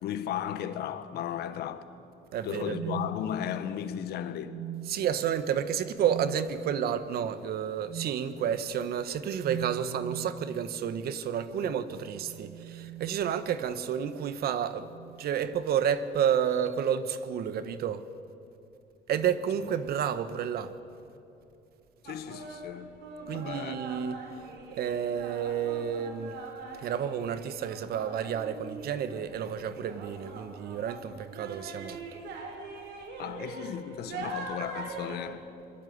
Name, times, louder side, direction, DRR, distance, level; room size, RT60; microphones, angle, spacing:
voice 1, 0.0-1.9 2.4-4.6 11.6-11.8 22.0-23.0 23.3-23.8 33.2-35.5, left 10 dB, 75° left, 1.7 m, -35 dB
voice 2, 2.3-3.0 4.9-14.9 15.2-18.0 19.1-20.7 23.3-24.2 24.7-26.4 26.8-32.0, right 8 dB, 65° right, 1.6 m, -30 dB
sound 1, 2.4-3.8 4.4-5.1 6.0-6.4 7.8-8.2 9.4-10.4 11.9-13.7 14.8-15.3 16.5-16.7, right 9 dB, 45° right, 1.6 m, -41 dB
sound 2, 22.0-35.2, right 3 dB, 85° right, 4.9 m, -42 dB
27.0 x 21.0 x 9.6 m
cardioid pair, 110°, 17 cm